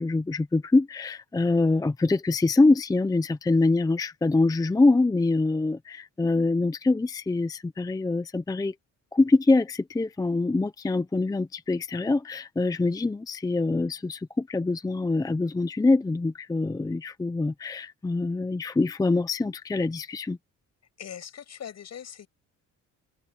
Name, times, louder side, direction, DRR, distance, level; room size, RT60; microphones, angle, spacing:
voice 1, 0.0-8.7 9.1-20.4, left 3 dB, 10° left, 0.6 m, -24 dB
voice 2, 21.0-22.3, left 8 dB, 55° left, 7.4 m, -41 dB
cardioid pair, 115°, 31 cm